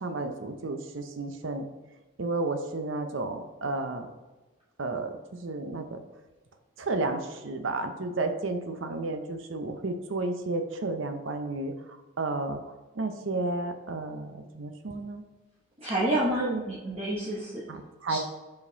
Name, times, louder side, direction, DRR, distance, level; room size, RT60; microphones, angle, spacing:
voice 1, 0.0-1.7 2.2-4.1 4.8-6.0 6.8-11.7 12.2-12.6 12.9-15.2 16.4-16.6 17.7-18.2, right 2 dB, 65° right, 7 dB, 0.6 m, -32 dB
voice 2, 15.8-17.6 18.1-18.2, right 1 dB, 30° right, -7 dB, 1.0 m, -29 dB
5.3 x 4.9 x 3.9 m, 1.2 s
head